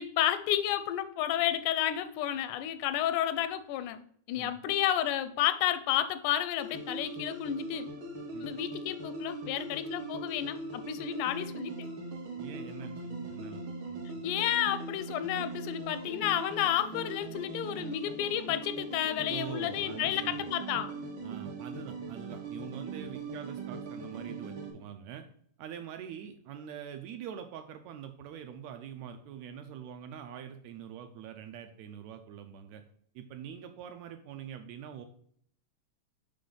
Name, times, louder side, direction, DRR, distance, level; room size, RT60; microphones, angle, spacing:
voice 1, 0.0-4.0 4.3-7.9 8.4-11.9 14.2-20.9, left 11 dB, 85° left, 12 dB, 2.0 m, -31 dB
sound 1, 6.6-24.7, right 3 dB, 60° right, 1.2 m, -40 dB
voice 2, 12.4-14.2 19.3-20.5 21.2-25.2 25.6-32.8 33.1-35.1, right 8 dB, 80° right, 7 dB, 1.7 m, -44 dB
5.6 x 5.1 x 3.8 m, 0.62 s
omnidirectional pair, 3.5 m